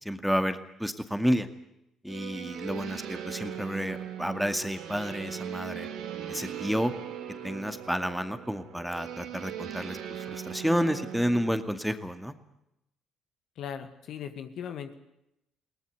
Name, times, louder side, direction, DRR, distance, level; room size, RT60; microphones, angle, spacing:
voice 1, 0.0-1.5 2.0-5.9 6.3-6.9 7.4-12.3, equal, ahead, 9 dB, 2.2 m, -30 dB
sound 1, 2.1-11.5, right 9 dB, 70° right, 3.2 m, -39 dB
voice 2, 13.6-14.9, left 8 dB, 60° left, 9 dB, 2.1 m, -38 dB
21.0 x 18.5 x 9.6 m, 0.84 s
hypercardioid pair, 50°, 0 cm